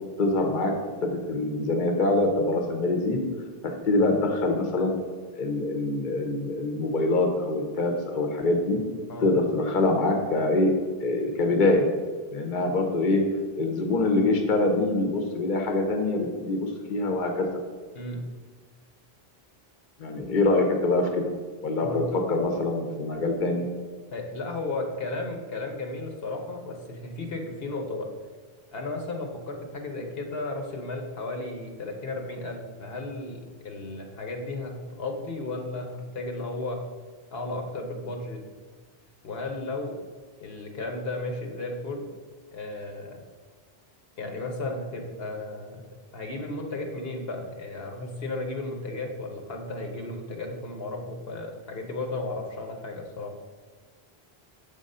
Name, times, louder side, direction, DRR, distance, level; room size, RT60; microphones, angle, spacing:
voice 1, 0.2-0.7 1.0-3.2 3.9-4.9 5.4-8.8 9.2-10.7 11.0-11.9 12.3-13.2 13.6-17.5 20.0-21.3 21.6-23.7, left 2 dB, 55° left, 3 dB, 1.0 m, -24 dB
voice 2, 21.8-22.1 24.1-28.1 28.7-36.8 37.3-38.4 39.2-40.0 40.4-42.1 42.5-43.2 44.2-45.9 46.1-53.3, left 2 dB, 75° left, 3 dB, 1.1 m, -34 dB
7.2 x 3.8 x 5.4 m, 1.5 s
omnidirectional pair, 1.0 m